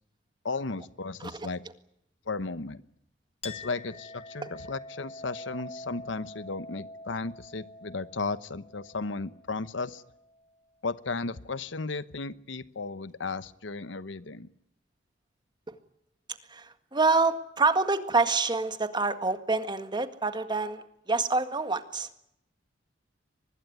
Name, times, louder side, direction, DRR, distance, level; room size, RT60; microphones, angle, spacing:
voice 1, 0.4-1.6 2.3-2.8 3.4-10.0 10.8-14.5, left 3 dB, 80° left, 15 dB, 1.0 m, -35 dB
Chink clink, 3.4-10.5, left 2 dB, 35° left, 1.1 m, -46 dB
voice 2, 16.5-22.1, right 3 dB, 25° right, 9 dB, 1.8 m, -27 dB
23.5 x 21.0 x 9.5 m, 0.78 s
head